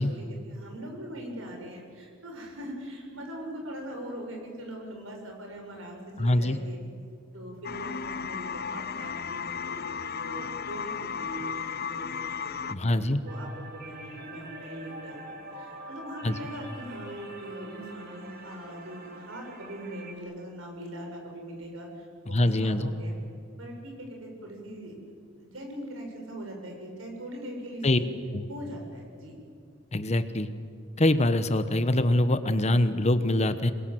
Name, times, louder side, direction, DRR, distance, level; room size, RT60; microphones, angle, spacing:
voice 1, 0.0-6.8 7.3-23.1 23.6-25.1 25.4-28.1 28.5-29.3, equal, 80° right, 2 dB, 6.9 m, -41 dB
voice 2, 6.2-6.6 12.7-13.2 16.2-16.3 22.3-22.9 27.8-28.0 28.3-28.4 29.9-30.5 31.0-33.7, left 1 dB, 35° left, 11 dB, 1.1 m, -24 dB
sound 1, 7.6-12.7, left 6 dB, 50° left, 0.7 m, -34 dB
sound 2, 13.3-20.2, right 2 dB, 50° right, 2.9 m, -45 dB
27.5 x 22.0 x 7.9 m, 2.2 s
head